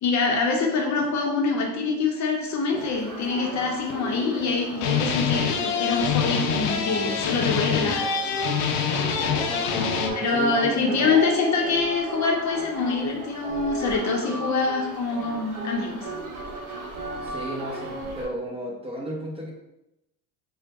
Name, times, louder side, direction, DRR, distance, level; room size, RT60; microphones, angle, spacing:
voice 1, 0.0-8.1 10.1-16.1, left 4 dB, 40° left, 1 dB, 0.7 m, -25 dB
sound 1, 2.7-18.3, right 2 dB, 40° right, 1.1 m, -35 dB
sound 2, 3.1-3.2 3.7-4.4 4.7-10.1, left 7 dB, 85° left, 0.6 m, -26 dB
voice 2, 9.4-9.9 10.3-11.3 17.2-19.5, right 1 dB, 15° right, -2 dB, 0.6 m, -33 dB
3.8 x 2.2 x 3.4 m, 0.90 s
supercardioid pair, 90°, 46 cm